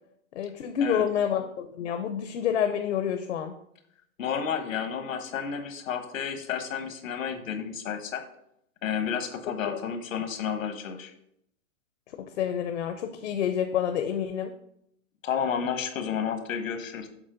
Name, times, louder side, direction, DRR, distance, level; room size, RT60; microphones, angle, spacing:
voice 1, 0.3-3.6 9.6-9.8 12.2-14.5, left 8 dB, 60° left, 7 dB, 0.7 m, -28 dB
voice 2, 4.2-8.2 8.8-11.1 15.2-17.1, left 7 dB, 80° left, 8 dB, 1.2 m, -31 dB
7.3 x 4.2 x 5.0 m, 0.75 s
hypercardioid pair, 180°, 39 cm